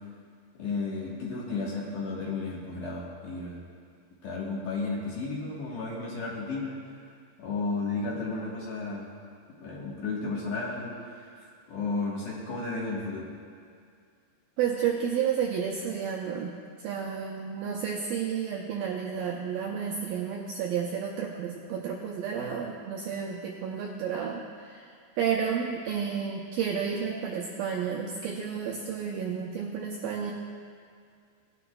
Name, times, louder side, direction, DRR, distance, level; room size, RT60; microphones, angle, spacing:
voice 1, 0.6-3.6 4.2-6.8 7.4-9.0 9.6-13.3, left 3 dB, 60° left, -5 dB, 2.4 m, -33 dB
voice 2, 14.6-16.5 16.8-24.9 25.2-30.3, right 7 dB, 85° right, -1 dB, 2.0 m, -31 dB
18.5 x 10.0 x 2.3 m, 2.2 s
omnidirectional pair, 5.1 m